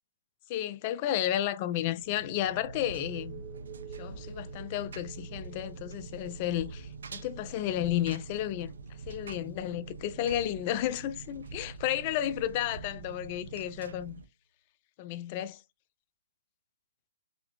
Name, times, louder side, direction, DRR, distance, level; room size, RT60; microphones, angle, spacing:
voice 1, 0.5-3.4 4.0-8.7 9.1-14.2 15.0-15.6, left 12 dB, 30° left, 0.3 m, -32 dB
sound 1, 1.9-13.4, right 4 dB, 25° right, 0.6 m, -48 dB
Engine, 2.6-14.2, right 4 dB, 70° right, 0.5 m, -46 dB
4.1 x 2.0 x 2.8 m
hypercardioid pair, 160°, 0 cm